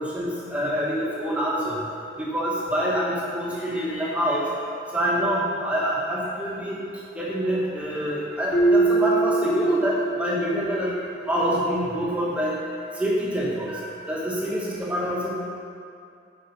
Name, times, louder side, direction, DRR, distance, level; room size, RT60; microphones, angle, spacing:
voice 1, 0.0-1.8 2.2-4.5 4.9-6.8 7.1-11.0 11.3-12.5 13.0-15.3, equal, 5° right, -5 dB, 1.2 m, -26 dB
Keyboard (musical), 8.5-11.3, right 3 dB, 60° left, 2.0 m, -23 dB
8.4 x 4.8 x 5.5 m, 2.4 s
head